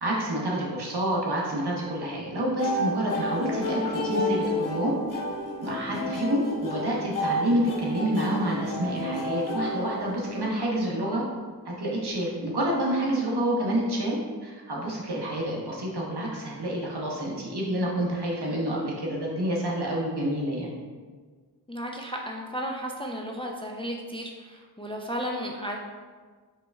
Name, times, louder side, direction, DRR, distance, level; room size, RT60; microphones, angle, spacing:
voice 1, 0.0-4.9 5.6-11.2 11.7-20.7, right 1 dB, 70° right, -3 dB, 1.0 m, -28 dB
sound 1, 2.6-10.5, left 1 dB, 50° left, 1.0 m, -31 dB
voice 2, 21.7-25.8, equal, 15° left, 0 dB, 0.3 m, -34 dB
5.2 x 3.3 x 2.2 m, 1.5 s
wide cardioid pair, 55°, 41 cm